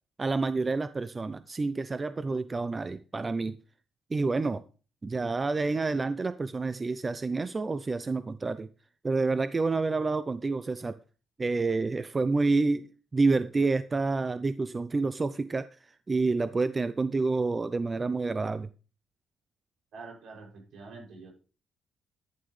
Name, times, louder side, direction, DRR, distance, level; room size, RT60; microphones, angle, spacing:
voice 1, 0.2-3.6 4.1-4.6 5.0-8.7 9.0-11.0 11.4-18.7, right 3 dB, 30° right, 14 dB, 0.5 m, -28 dB
voice 2, 19.9-21.3, right 4 dB, 70° right, -1 dB, 6.4 m, -46 dB
11.5 x 10.5 x 3.2 m, 0.36 s
cardioid pair, 90°, 0 cm